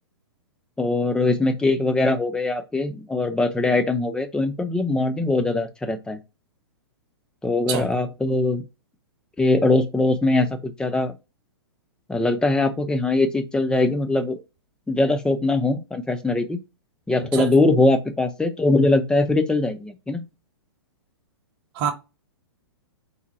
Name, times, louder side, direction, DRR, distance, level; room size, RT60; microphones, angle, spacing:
voice 1, 0.8-6.2 7.4-8.6 9.4-11.1 12.1-14.4 14.9-16.6 17.1-20.3, left 2 dB, 5° left, 0.5 m, -21 dB
voice 2, 7.7-7.9 17.3-17.5 21.7-21.9, right 7 dB, 35° right, 0.9 m, -25 dB
4.1 x 2.1 x 4.0 m
hypercardioid pair, 125°, 14 cm